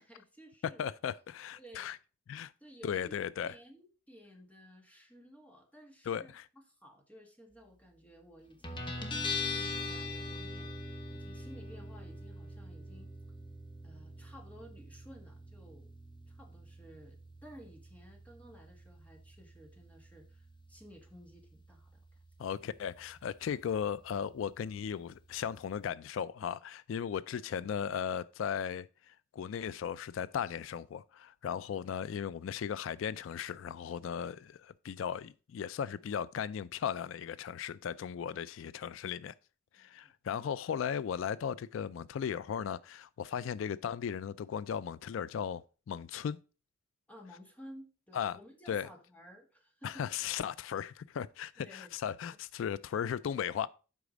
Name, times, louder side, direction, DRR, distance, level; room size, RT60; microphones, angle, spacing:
voice 1, 0.0-0.8 1.5-1.9 2.6-10.7 11.1-13.1 13.8-15.9 16.3-22.0 39.8-40.1 47.1-50.4 51.6-51.9, equal, 10° left, 1.6 m, -55 dB
voice 2, 0.6-2.0 2.3-2.5 2.8-3.6 6.1-6.5 22.4-39.3 39.7-46.4 48.1-48.4 48.7-48.9 49.8-53.7, left 8 dB, 80° left, 0.3 m, -37 dB
Guitar, 8.6-25.8, left 3 dB, 25° left, 1.3 m, -44 dB
8.2 x 5.0 x 5.0 m
head